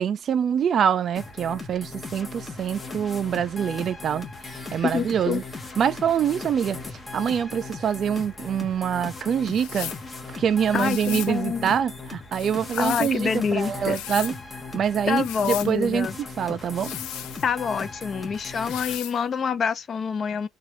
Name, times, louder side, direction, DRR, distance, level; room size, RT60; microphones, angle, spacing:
voice 1, 0.0-5.4 5.8-6.8 7.1-9.9 10.3-14.3 14.7-16.1 16.4-16.9, right 8 dB, 45° right, 0.4 m, -25 dB
sound 1, 1.1-19.0, left 3 dB, 20° left, 1.1 m, -38 dB
voice 2, 4.8-5.4 10.7-11.7 12.8-14.0 15.1-16.1 17.4-20.5, left 6 dB, 40° left, 0.6 m, -26 dB
sound 2, 9.5-10.1 10.7-11.4 12.3-13.2 13.7-14.4 15.1-15.7 16.7-17.7 18.6-19.2, left 13 dB, 85° left, 0.5 m, -36 dB
3.0 x 2.4 x 4.3 m
cardioid pair, 125°, 0 cm